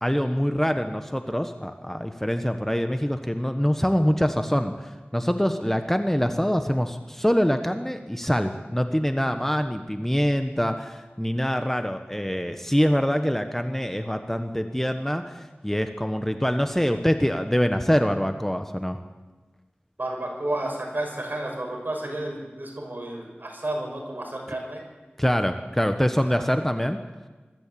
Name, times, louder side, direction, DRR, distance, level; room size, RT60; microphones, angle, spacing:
voice 1, 0.0-19.0 25.2-27.0, equal, 10° left, 7 dB, 1.2 m, -24 dB
voice 2, 20.0-24.8 26.4-26.5, right 1 dB, 50° right, 0 dB, 6.4 m, -31 dB
22.0 x 14.0 x 8.6 m, 1.3 s
wide cardioid pair, 45°, 4 cm